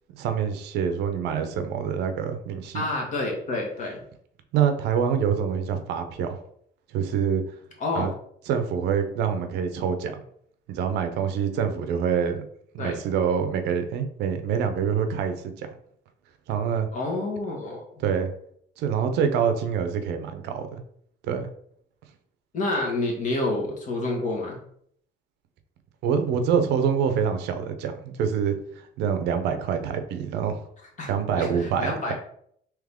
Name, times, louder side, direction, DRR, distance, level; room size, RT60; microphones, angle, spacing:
voice 1, 0.1-2.8 4.5-6.4 6.9-7.4 7.9-8.1 8.5-10.2 10.7-12.4 12.7-15.7 16.5-16.9 18.0-18.3 18.8-20.8 21.3-21.5 26.0-30.6 31.1-32.1, right 7 dB, 85° right, 7 dB, 0.6 m, -26 dB
voice 2, 2.7-4.0 7.8-8.1 12.8-13.0 16.9-17.8 22.5-24.6 31.0-31.1 31.4-32.1, left 2 dB, 45° left, 0 dB, 1.4 m, -28 dB
3.6 x 2.9 x 3.5 m, 0.66 s
cardioid pair, 110°, 17 cm